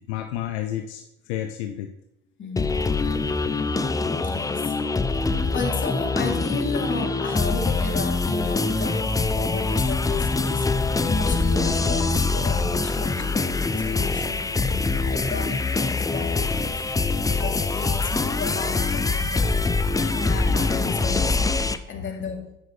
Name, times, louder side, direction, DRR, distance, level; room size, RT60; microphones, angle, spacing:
voice 1, 0.1-1.9 11.0-11.1, left 12 dB, 70° left, 6 dB, 0.9 m, -31 dB
voice 2, 2.4-2.9 4.2-4.8 5.2-16.7 17.3-19.6 20.0-22.6, left 4 dB, 35° left, 1 dB, 3.1 m, -34 dB
sound 1, 2.6-21.8, left 3 dB, 10° left, 0.6 m, -24 dB
11.0 x 9.8 x 3.4 m, 0.82 s
hypercardioid pair, 75°, 34 cm